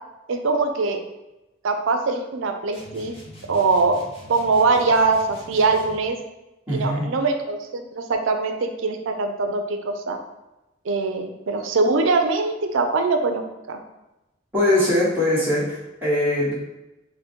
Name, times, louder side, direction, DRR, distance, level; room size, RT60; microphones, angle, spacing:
voice 1, 0.3-1.0 1.6-3.1 3.5-4.0 4.3-6.2 6.7-10.2 10.8-13.8, right 3 dB, 75° right, 6 dB, 0.5 m, -22 dB
sound 1, 2.7-6.1, left 1 dB, 30° left, 0.7 m, -44 dB
voice 2, 6.7-7.1 14.5-16.5, left 1 dB, 10° right, -9 dB, 1.1 m, -21 dB
3.8 x 2.1 x 4.3 m, 0.98 s
head